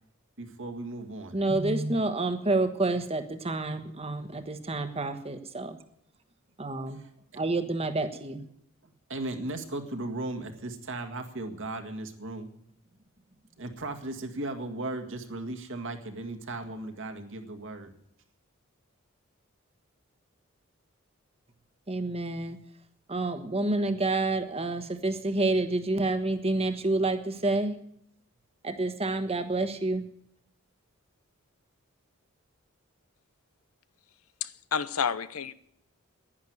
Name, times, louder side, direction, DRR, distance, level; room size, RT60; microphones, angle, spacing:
voice 1, 0.4-1.4 6.9-7.1 8.8-12.5 13.6-17.9, right 2 dB, 60° right, 1.9 m, -36 dB
voice 2, 1.3-5.8 6.6-7.0 7.3-8.4 21.9-22.6 23.1-27.7 28.6-30.0, right 2 dB, 30° right, 1.3 m, -28 dB
voice 3, 34.4-35.5, left 6 dB, 85° left, 0.8 m, -30 dB
11.0 x 10.5 x 9.4 m
head